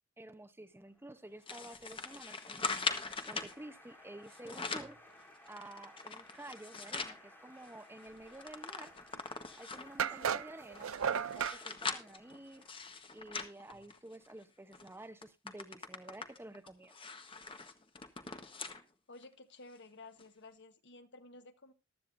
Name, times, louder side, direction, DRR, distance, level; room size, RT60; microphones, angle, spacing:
voice 1, 0.2-2.9 3.3-5.0 5.5-8.9 9.6-12.6 13.1-16.9, right 1 dB, 10° right, 9 dB, 0.8 m, -51 dB
Applause, 0.7-13.2, left 1 dB, 10° left, 3.4 m, -59 dB
sound 1, 1.5-3.5 4.3-5.0 5.5-7.2 7.6-7.7 8.0-10.0 10.6-14.3 14.7-14.9 15.2-18.8 19.2-19.3 20.2-20.3, left 4 dB, 25° left, 1.1 m, -41 dB
sound 2, 9.1-9.2 10.0-11.6, right 7 dB, 70° right, 0.5 m, -34 dB
voice 2, 19.1-21.7, left 2 dB, 60° left, 9 dB, 1.2 m, -54 dB
15.0 x 12.0 x 2.6 m, 0.27 s
head